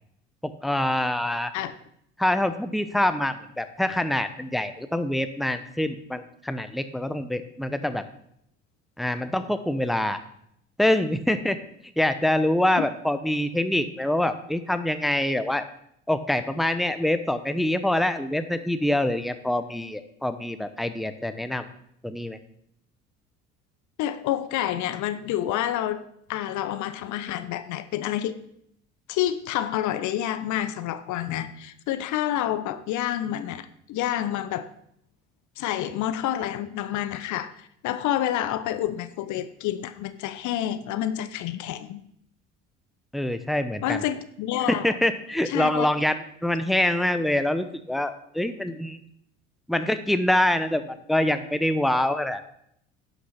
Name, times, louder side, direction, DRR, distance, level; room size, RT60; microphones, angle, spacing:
voice 1, 0.4-1.5 2.2-8.0 9.0-10.2 10.8-11.6 12.0-15.6 16.1-21.7 22.0-22.4 43.1-44.0 44.7-49.0 49.7-50.8 51.1-52.4, left 1 dB, ahead, 10 dB, 0.8 m, -25 dB
voice 2, 24.0-26.0 26.3-28.4 29.1-34.7 35.6-42.0 43.8-45.0 45.5-45.9, left 12 dB, 50° left, 13 dB, 0.8 m, -28 dB
11.0 x 6.9 x 5.8 m, 0.72 s
figure-of-eight pair, 60°, 37 cm